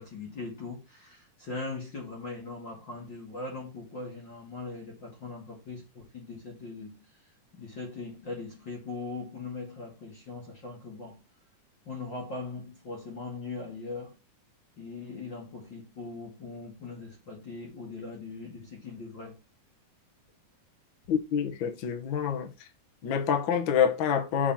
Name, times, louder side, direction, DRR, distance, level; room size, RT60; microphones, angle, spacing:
voice 1, 0.0-7.1 7.5-11.2 11.8-14.2 14.8-19.4, left 3 dB, 40° left, 2.5 m, -40 dB
voice 2, 21.1-22.5 23.0-24.5, left 7 dB, 65° left, 1.2 m, -27 dB
5.4 x 5.0 x 5.8 m
omnidirectional pair, 3.8 m